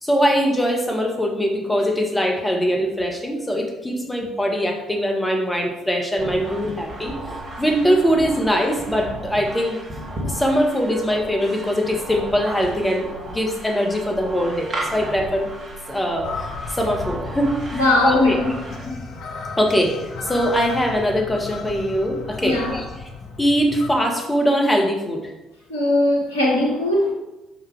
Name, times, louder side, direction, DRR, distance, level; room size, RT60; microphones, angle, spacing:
voice 1, 0.0-7.1 7.6-9.8 10.3-15.5 15.9-18.4 19.6-22.9 23.4-25.3, equal, 10° left, 1 dB, 1.3 m, -22 dB
sound 1, 6.2-18.8, right 1 dB, 40° right, 1.6 m, -34 dB
sound 2, 16.2-24.0, left 4 dB, 55° left, 0.7 m, -34 dB
voice 2, 17.7-18.5 18.8-19.0 22.4-22.8 25.7-27.1, left 2 dB, 80° left, -1 dB, 1.1 m, -19 dB
5.2 x 3.9 x 4.7 m, 0.99 s
figure-of-eight pair, 45°, 0 cm